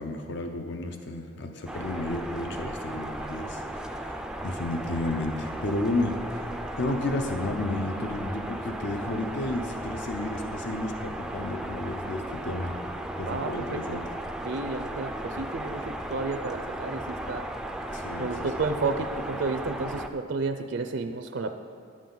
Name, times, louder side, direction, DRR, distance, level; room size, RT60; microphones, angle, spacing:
voice 1, 0.0-6.5 6.8-12.7 13.2-14.1 17.9-18.5, left 2 dB, 65° left, 5 dB, 0.6 m, -32 dB
sound 1, 1.7-20.1, right 1 dB, 5° right, 0.3 m, -36 dB
voice 2, 13.3-14.0 14.4-17.5 18.2-21.6, right 3 dB, 65° right, 7 dB, 0.5 m, -31 dB
11.0 x 7.4 x 3.8 m, 2.2 s
head